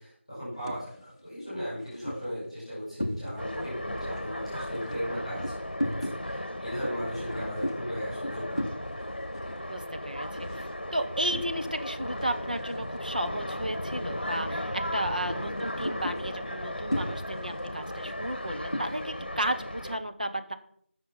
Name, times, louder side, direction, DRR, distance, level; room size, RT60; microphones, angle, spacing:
voice 1, 0.0-8.7 15.2-15.4, equal, 5° left, -11 dB, 5.4 m, -37 dB
sound 1, 0.5-0.9 1.4-3.7 4.0-11.9 12.1-13.3 13.5-13.8 14.2-14.6 14.9-19.1, equal, 25° left, 0.8 m, -37 dB
sound 2, 3.4-20.0, left 1 dB, 45° left, 1.1 m, -36 dB
voice 2, 9.7-10.5 10.9-20.5, right 1 dB, 40° right, 7 dB, 1.0 m, -33 dB
14.0 x 6.2 x 5.6 m, 0.65 s
figure-of-eight pair, 180°, 7 cm